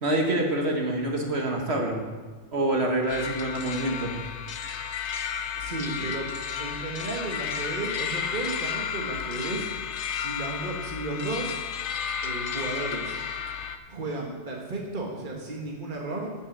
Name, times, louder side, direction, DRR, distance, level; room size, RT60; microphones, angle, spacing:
voice 1, 0.0-2.0 2.5-4.1, right 1 dB, 60° right, 1 dB, 1.9 m, -26 dB
sound 1, 3.1-13.8, left 7 dB, 70° left, 1.0 m, -32 dB
voice 2, 5.6-6.3 6.6-9.7 10.1-11.7 12.2-13.2 13.9-16.3, right 2 dB, 45° right, 0 dB, 1.6 m, -33 dB
13.0 x 5.7 x 7.4 m, 1.4 s
omnidirectional pair, 1.2 m